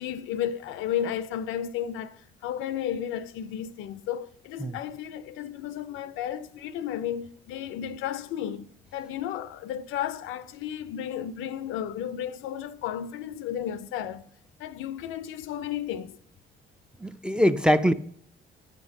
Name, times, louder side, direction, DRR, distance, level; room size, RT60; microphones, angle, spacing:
voice 1, 0.0-14.3 14.6-16.2, left 10 dB, 90° left, 0.4 m, -33 dB
voice 2, 17.0-17.9, equal, 5° right, 0.3 m, -22 dB
8.0 x 5.3 x 3.6 m
cardioid pair, 90°, 20 cm